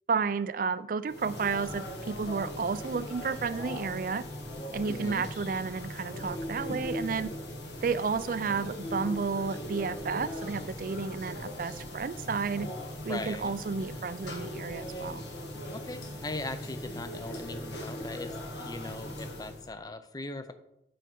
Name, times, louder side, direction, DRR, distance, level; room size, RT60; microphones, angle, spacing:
voice 1, 0.1-4.2 4.7-7.3 7.8-12.7 13.0-15.2, right 5 dB, 45° right, 15 dB, 0.4 m, -32 dB
sound 1, 1.1-19.7, left 1 dB, 70° left, 1.7 m, -39 dB
voice 2, 4.9-5.3 13.1-13.5 15.7-20.5, left 2 dB, 20° left, 10 dB, 0.5 m, -40 dB
9.1 x 5.9 x 4.5 m, 0.86 s
head